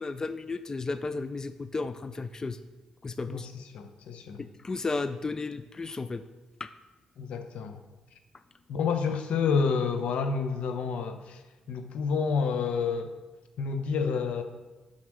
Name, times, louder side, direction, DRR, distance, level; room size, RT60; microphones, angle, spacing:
voice 1, 0.0-2.6 3.0-3.5 4.6-6.2 6.6-6.7, left 3 dB, 30° left, 12 dB, 0.4 m, -33 dB
voice 2, 3.3-4.4 7.2-7.8 8.7-11.4 11.7-13.1 13.6-14.4, left 5 dB, 70° left, 7 dB, 0.8 m, -29 dB
6.2 x 5.8 x 6.3 m, 1.2 s
supercardioid pair, 55°, 2 cm